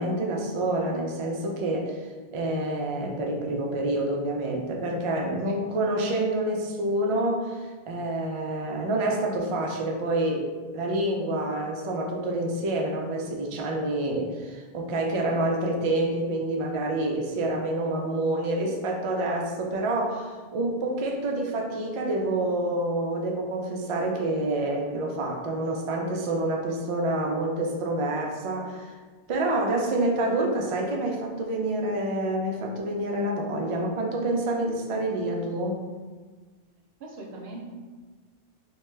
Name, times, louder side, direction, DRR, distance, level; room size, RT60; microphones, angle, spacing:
voice 1, 0.0-29.0 29.3-35.8, right 1 dB, 60° right, 0 dB, 0.3 m, -27 dB
voice 2, 25.9-26.2 37.0-37.7, right 2 dB, 80° right, 1 dB, 0.8 m, -42 dB
2.8 x 2.2 x 3.2 m, 1.4 s
omnidirectional pair, 1.0 m